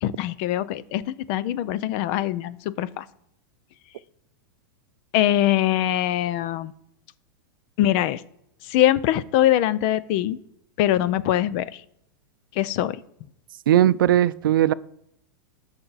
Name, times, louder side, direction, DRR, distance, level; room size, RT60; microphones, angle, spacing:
voice 1, 0.0-3.1 5.1-6.7 7.8-8.2 8.6-10.4 10.8-11.8 12.5-13.0, left 13 dB, 30° left, 18 dB, 0.4 m, -23 dB
voice 2, 13.7-14.7, right 12 dB, 85° right, 17 dB, 0.5 m, -18 dB
12.5 x 5.6 x 4.0 m, 0.76 s
supercardioid pair, 170°, 11 cm